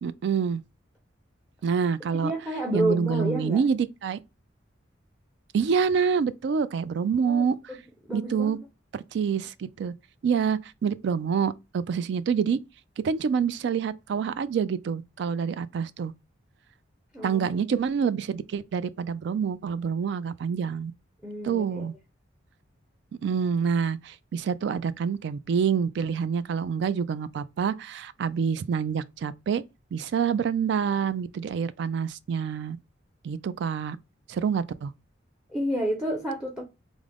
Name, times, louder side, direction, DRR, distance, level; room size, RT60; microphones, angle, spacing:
voice 1, 0.0-0.6 1.6-2.3 2.7-4.2 5.5-7.7 8.1-8.6 8.9-9.9 10.2-12.6 13.0-16.1 17.2-20.9 21.4-21.9 23.2-29.6 29.9-32.8 33.2-34.0 34.3-34.9, right 6 dB, 60° right, 0.3 m, -27 dB
voice 2, 2.1-3.6 7.2-7.8 8.1-8.6 17.1-17.6 21.2-21.9 35.5-36.6, right 1 dB, 5° right, 0.6 m, -30 dB
3.6 x 2.0 x 3.3 m
head